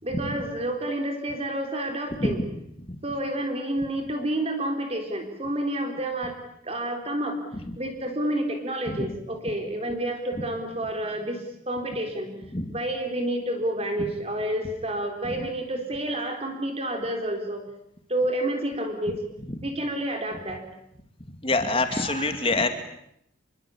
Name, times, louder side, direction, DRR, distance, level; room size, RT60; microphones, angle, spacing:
voice 1, 0.0-2.4 3.0-6.4 6.6-7.4 7.8-17.6 18.1-19.2 19.6-20.6 21.8-22.7, right 1 dB, 30° right, 4 dB, 3.8 m, -29 dB
voice 2, 21.4-22.7, left 3 dB, 25° left, 8 dB, 2.6 m, -24 dB
28.0 x 23.0 x 8.7 m, 0.75 s
head